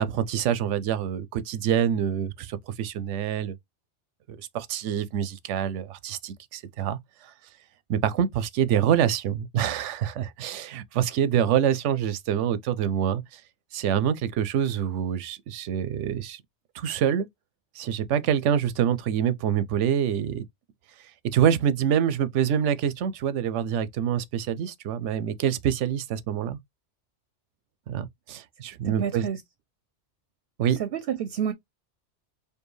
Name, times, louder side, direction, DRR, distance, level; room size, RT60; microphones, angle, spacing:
voice 1, 0.0-3.6 4.5-7.0 7.9-13.4 13.7-16.4 16.7-17.3 17.8-20.4 21.3-26.6 27.9-29.3 30.6-30.8, right 9 dB, 90° right, 0.9 m, -26 dB
voice 2, 28.9-29.4 30.8-31.5, right 9 dB, 65° right, 0.7 m, -29 dB
4.5 x 2.7 x 3.1 m
omnidirectional pair, 1.2 m